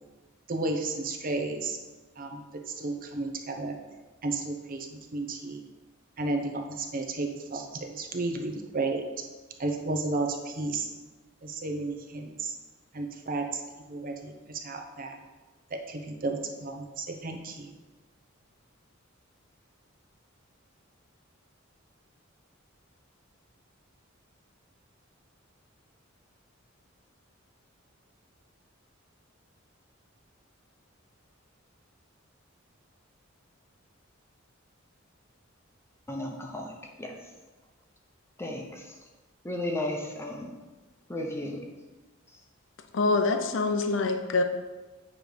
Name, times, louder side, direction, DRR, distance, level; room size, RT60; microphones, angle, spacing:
voice 1, 0.5-1.8 2.2-3.7 4.2-5.6 6.2-9.0 9.6-10.9 11.4-12.5 12.9-13.6 13.9-15.2 15.7-17.7, right 3 dB, 45° right, 4 dB, 0.8 m, -33 dB
voice 2, 36.1-36.7 37.0-37.1 38.4-38.8 39.4-40.5 41.1-41.6, left 1 dB, 15° left, 1 dB, 0.8 m, -34 dB
voice 3, 42.9-44.4, left 3 dB, 65° left, 6 dB, 0.5 m, -25 dB
8.9 x 3.2 x 5.0 m, 1.2 s
head